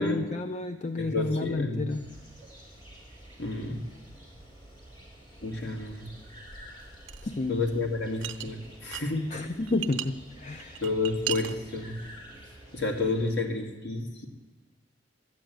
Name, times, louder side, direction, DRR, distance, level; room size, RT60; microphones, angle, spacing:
voice 1, 0.0-2.1 7.2-7.6 9.3-10.8, left 2 dB, 40° left, 6 dB, 0.5 m, -31 dB
voice 2, 1.0-1.9 3.4-3.8 5.4-6.1 7.5-9.3 10.8-12.0 12.7-14.3, left 3 dB, 65° left, 2 dB, 2.1 m, -30 dB
sound 1, 1.9-13.3, equal, 25° left, 3.5 m, -49 dB
sound 2, 7.1-7.3 8.2-9.1 9.4-10.1 10.6-11.6, right 12 dB, 80° right, 0.8 m, -35 dB
12.5 x 9.0 x 9.3 m, 1.2 s
head